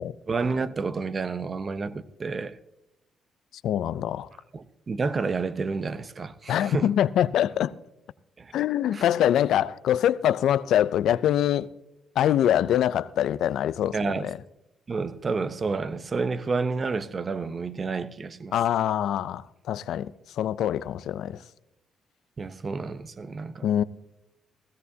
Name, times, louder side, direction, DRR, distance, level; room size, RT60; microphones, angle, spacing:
voice 1, 0.3-2.6 4.5-6.9 8.4-8.5 8.9-9.1 13.9-14.3 14.9-18.5 22.4-23.7, right 4 dB, 35° right, 0.7 m, -30 dB
voice 2, 3.6-4.3 6.5-7.7 8.5-11.7 12.2-14.0 14.2-14.4 18.5-21.4 23.6-23.8, left 11 dB, 75° left, 0.4 m, -24 dB
16.5 x 16.0 x 2.7 m
cardioid pair, 100°, 0 cm